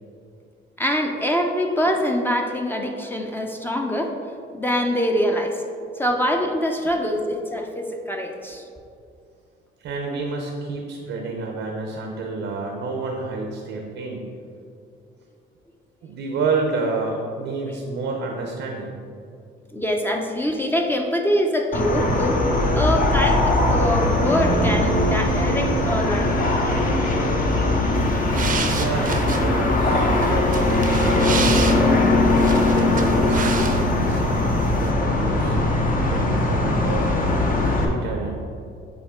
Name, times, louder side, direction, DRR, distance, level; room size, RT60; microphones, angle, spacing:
voice 1, 0.8-4.1 4.5-5.6 6.0-8.7 19.7-22.4 22.7-26.3, equal, 10° left, 2 dB, 0.6 m, -24 dB
voice 2, 9.8-14.3 16.0-19.0 28.6-32.2 32.7-35.6 36.0-38.4, right 3 dB, 80° right, 1 dB, 0.8 m, -29 dB
sound 1, 21.7-37.8, left 2 dB, 45° left, 1.0 m, -20 dB
Guitar, 24.2-31.9, right 4 dB, 25° left, 1.4 m, -32 dB
sound 2, 28.0-34.2 34.4-34.9, right 5 dB, 45° right, 0.6 m, -30 dB
8.4 x 3.5 x 3.7 m, 2.4 s
cardioid pair, 90°, 20 cm